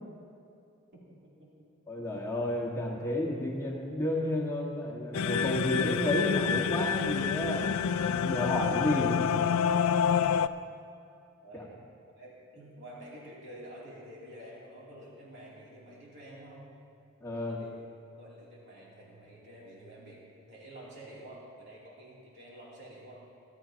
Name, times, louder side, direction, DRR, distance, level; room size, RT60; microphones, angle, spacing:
voice 1, 0.9-1.7 11.4-16.7 17.4-17.8 18.1-23.3, right 1 dB, 55° right, -6 dB, 3.0 m, -49 dB
voice 2, 1.9-9.3 11.5-11.6 17.2-17.6, left 1 dB, 15° left, -3 dB, 1.6 m, -31 dB
sound 1, 5.1-10.5, left 7 dB, 90° left, 0.4 m, -28 dB
20.0 x 12.0 x 2.9 m, 2.5 s
head